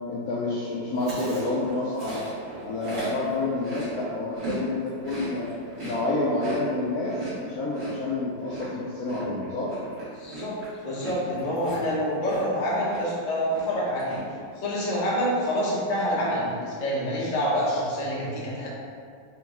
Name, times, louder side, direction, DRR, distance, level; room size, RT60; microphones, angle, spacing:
voice 1, 0.1-2.3 2.6-5.5 5.8-9.7 16.1-16.2, left 2 dB, 70° left, -6 dB, 0.9 m, -28 dB
Chewing mastication, 0.9-4.6 4.9-12.6 12.9-13.2 13.5-14.2, right 2 dB, 55° right, 1.8 m, -38 dB
voice 2, 10.1-10.6 10.8-14.2 14.6-18.7, equal, 35° left, -6 dB, 0.6 m, -27 dB
4.5 x 3.0 x 3.5 m, 2.1 s
omnidirectional pair, 2.0 m